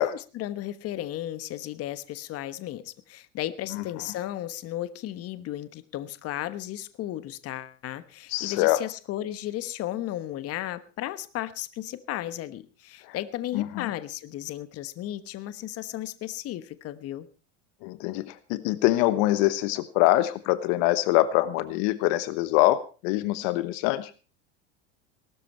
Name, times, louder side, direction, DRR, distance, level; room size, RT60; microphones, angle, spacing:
voice 1, 0.0-17.3, left 13 dB, 40° left, 14 dB, 1.2 m, -35 dB
voice 2, 8.3-8.8 13.5-13.6 17.8-24.1, left 16 dB, 60° left, 14 dB, 1.2 m, -24 dB
18.5 x 13.0 x 4.4 m, 0.34 s
supercardioid pair, 115°, 35 cm